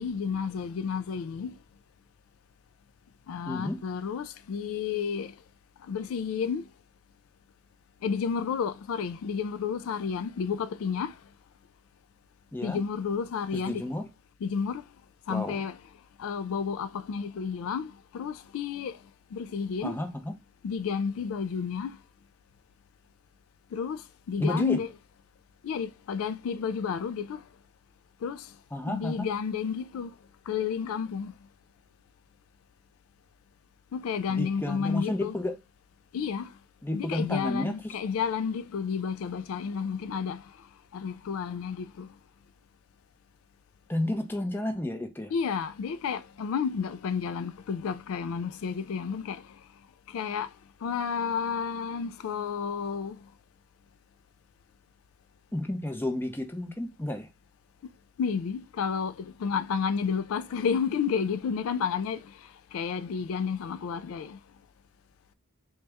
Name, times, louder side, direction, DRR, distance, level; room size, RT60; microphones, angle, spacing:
voice 1, 0.0-1.5 3.3-5.3 5.9-6.7 8.0-11.1 12.6-13.8 14.4-14.8 15.3-15.8 16.2-19.0 19.3-20.0 20.6-22.0 23.7-24.9 25.6-27.4 28.2-28.5 28.9-30.1 30.5-31.3 33.9-35.4 36.1-36.5 36.9-40.4 40.9-42.1 45.3-49.4 50.1-50.5 50.8-53.2 58.2-62.3 62.7-64.4, left 6 dB, 75° left, 0.3 m, -31 dB
voice 2, 3.5-3.8 12.5-12.8 13.5-14.1 15.3-15.6 19.8-20.3 24.4-24.8 28.7-29.3 34.3-35.6 36.8-38.0 43.9-45.3 55.5-57.3, left 1 dB, 10° left, 0.6 m, -31 dB
4.0 x 2.3 x 3.3 m
head